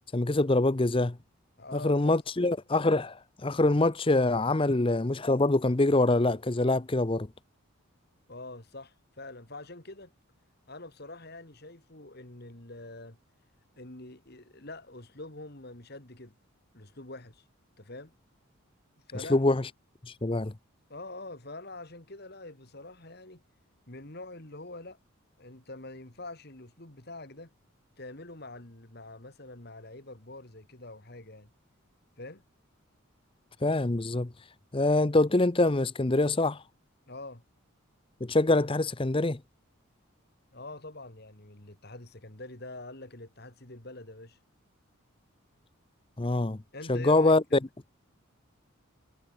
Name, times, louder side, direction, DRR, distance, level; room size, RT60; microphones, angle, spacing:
voice 1, 0.1-1.2 1.7-3.2 3.4-7.3 19.3-19.6 20.2-20.5 33.6-34.3 34.7-36.6 38.2-39.4 46.2-46.6 46.9-47.4, left 2 dB, 25° left, 0.6 m, -24 dB
voice 2, 1.6-2.1 8.3-10.1 10.7-13.2 13.8-16.4 16.7-17.4 17.8-18.1 19.1-19.5 20.9-23.4 23.9-25.0 25.4-27.5 28.0-31.5 32.2-32.4 37.1-37.4 40.5-44.4 46.7-47.6, left 2 dB, 45° left, 2.6 m, -45 dB
head